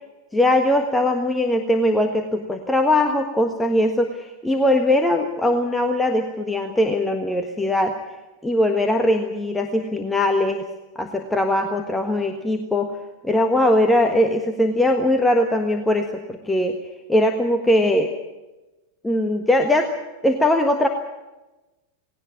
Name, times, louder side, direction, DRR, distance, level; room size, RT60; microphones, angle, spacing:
voice 1, 0.3-8.0 8.4-10.7 10.9-13.0 13.2-16.8 17.1-18.1 19.0-19.9 20.2-20.9, left 1 dB, 10° left, 4 dB, 1.5 m, -20 dB
18.5 x 18.0 x 8.9 m, 1.1 s
figure-of-eight pair, 90°, 0 cm